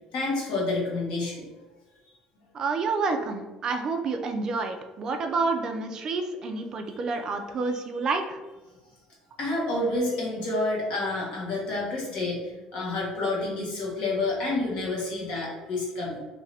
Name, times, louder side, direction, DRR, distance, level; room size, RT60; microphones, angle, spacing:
voice 1, 0.1-1.6 9.4-16.2, left 2 dB, 60° left, -4 dB, 1.1 m, -29 dB
voice 2, 2.5-8.4, right 4 dB, 30° right, 5 dB, 0.3 m, -29 dB
2.7 x 2.5 x 3.3 m, 1.1 s
cardioid pair, 165°, 2 cm